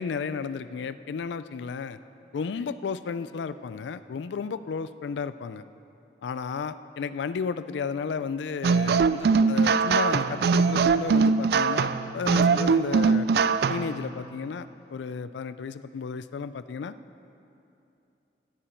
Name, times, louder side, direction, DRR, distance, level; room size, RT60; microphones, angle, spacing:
voice 1, 0.0-2.0 2.3-5.6 6.2-13.3 13.7-17.0, left 5 dB, 85° left, 14 dB, 0.4 m, -33 dB
sound 1, 8.6-14.0, right 5 dB, 65° right, 0.3 m, -22 dB
15.5 x 8.7 x 4.4 m, 2.8 s
head